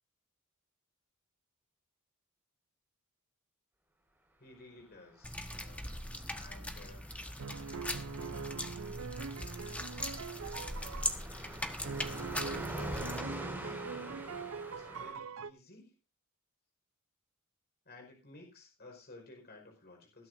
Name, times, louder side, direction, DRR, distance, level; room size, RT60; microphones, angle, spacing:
voice 1, 4.4-5.8 6.3-7.1 8.8-9.0 11.4-14.2 14.6-15.9 17.8-20.3, left 2 dB, 50° left, 2 dB, 4.9 m, -55 dB
sound 1, 5.2-13.2, left 1 dB, 5° left, 1.3 m, -40 dB
Car passing by, 5.2-15.1, right 1 dB, 10° right, 5.2 m, -46 dB
sound 2, 7.4-11.1 11.8-15.5, right 5 dB, 70° right, 0.6 m, -42 dB
20.0 x 13.0 x 2.6 m, 0.29 s
head